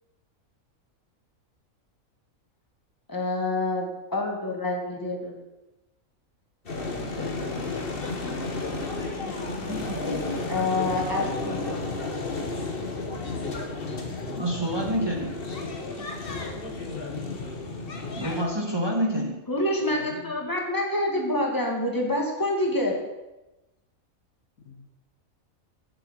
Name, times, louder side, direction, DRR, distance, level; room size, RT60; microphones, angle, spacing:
voice 1, 3.1-5.3 10.5-11.8 19.5-23.0, left 1 dB, 15° left, 0 dB, 2.0 m, -27 dB
sound 1, 6.7-18.4, left 3 dB, 45° left, 1.5 m, -32 dB
voice 2, 6.8-7.8 8.5-10.3 13.2-13.9 14.8-15.1 15.9-17.3 19.9-20.3 24.6-24.8, left 3 dB, 85° left, 3 dB, 1.9 m, -43 dB
voice 3, 9.7-10.4 14.4-15.3 18.1-19.4, equal, 20° right, 1 dB, 1.3 m, -28 dB
7.8 x 7.7 x 7.5 m, 1.0 s
omnidirectional pair, 1.4 m